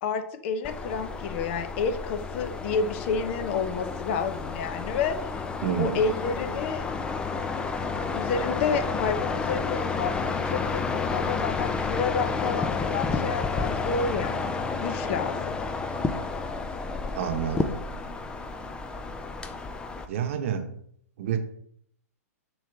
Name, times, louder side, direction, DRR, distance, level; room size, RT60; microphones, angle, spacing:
voice 1, 0.0-5.3 5.8-6.9 8.1-15.6, left 5 dB, 45° left, 8 dB, 0.9 m, -30 dB
sound 1, 0.6-20.1, left 4 dB, 10° left, 0.5 m, -31 dB
voice 2, 5.6-6.0 17.1-17.8 20.1-20.7 21.2-21.4, right 9 dB, 55° right, 6 dB, 1.0 m, -28 dB
6.7 x 3.2 x 5.9 m, 0.67 s
hypercardioid pair, 115°, 9 cm